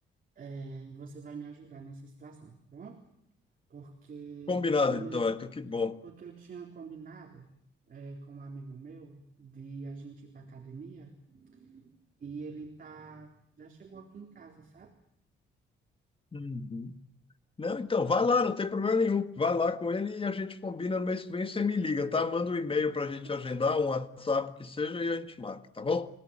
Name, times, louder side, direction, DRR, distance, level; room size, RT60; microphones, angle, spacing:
voice 1, 0.4-3.0 3.7-5.2 6.0-7.5 7.9-12.0 12.2-14.9 18.0-18.2 23.2-23.3, right 4 dB, 45° right, 4.0 m, -45 dB
voice 2, 4.5-6.0 16.3-17.0 17.6-26.1, left 4 dB, 25° left, 1.9 m, -29 dB
28.5 x 17.5 x 9.0 m
cardioid pair, 90°, 20 cm